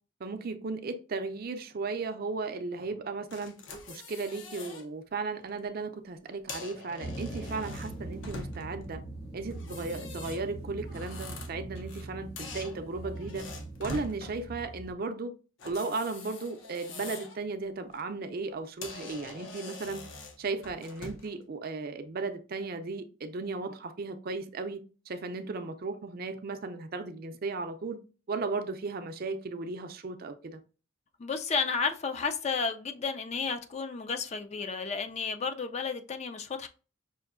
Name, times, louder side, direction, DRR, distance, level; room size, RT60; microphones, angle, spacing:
voice 1, 0.2-3.6 3.9-9.0 9.3-13.5 13.8-15.3 15.6-20.1 20.4-28.0 28.3-30.6, right 3 dB, 50° right, 0.5 m, -36 dB
sound 1, 3.3-4.8 5.3-5.5 6.3-8.8 9.5-12.1 12.4-14.1 15.6-17.4 17.8-18.0 18.5-18.6 18.8-21.3, left 3 dB, 70° left, 0.7 m, -44 dB
sound 2, 7.0-14.9, right 2 dB, 55° left, 1.1 m, -41 dB
voice 2, 31.2-36.7, left 5 dB, 35° left, 0.4 m, -32 dB
5.6 x 2.6 x 2.5 m
head